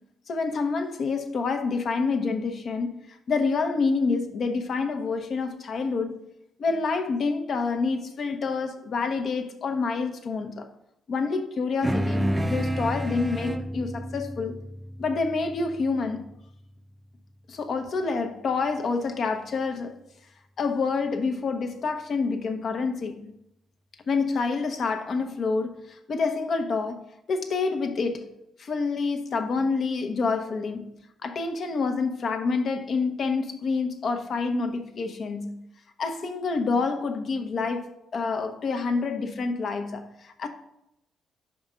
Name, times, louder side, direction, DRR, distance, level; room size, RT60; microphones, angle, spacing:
voice 1, 0.3-6.2 6.6-10.7 11.1-14.6 15.0-16.2 17.5-19.9 20.6-23.3 24.1-27.0 27.3-28.3 28.6-30.9 31.2-35.6 36.0-40.5, left 4 dB, 55° left, 0.9 m, -27 dB
sound 1, 11.8-16.6, equal, 10° right, 0.5 m, -30 dB
5.5 x 5.0 x 5.0 m
cardioid pair, 90°, 0 cm